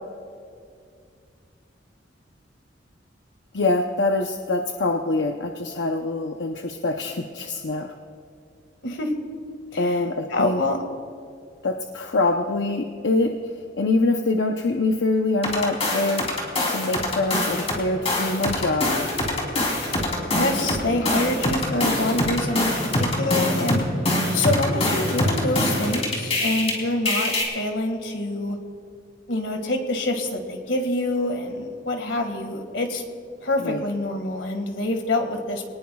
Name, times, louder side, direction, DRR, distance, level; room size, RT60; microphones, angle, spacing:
voice 1, 3.5-7.9 9.8-10.6 11.6-13.4 13.8-16.3 16.7-19.1 33.6-33.8, left 2 dB, 70° left, 3 dB, 0.8 m, -24 dB
voice 2, 10.3-10.8 20.4-23.8 24.3-28.6 29.3-33.0 33.4-35.7, left 2 dB, 90° left, 5 dB, 1.9 m, -26 dB
sound 1, 15.4-17.8 18.1-26.7 27.1-27.4, left 1 dB, 35° left, 3.3 m, -24 dB
27.0 x 19.0 x 2.4 m, 2.3 s
head